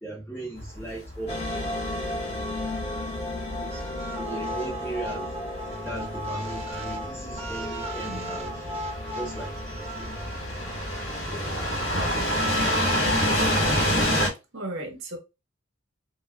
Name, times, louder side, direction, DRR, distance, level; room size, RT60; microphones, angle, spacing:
voice 1, 0.0-1.4 2.1-2.6 3.6-3.7 4.2-5.4 5.6-8.7 9.2-10.6 11.3-11.6 11.9-12.9, right 2 dB, 10° left, 0.8 m, -38 dB
sound 1, 0.6-14.3, equal, 75° left, 1.6 m, -28 dB
sound 2, 1.3-12.5, left 1 dB, 30° left, 1.3 m, -36 dB
sound 3, 3.7-10.4, equal, 30° right, 0.9 m, -37 dB
voice 2, 8.1-8.4 11.7-12.2 13.0-13.2 14.5-15.2, right 2 dB, 65° right, 1.3 m, -37 dB
5.3 x 2.4 x 2.3 m
head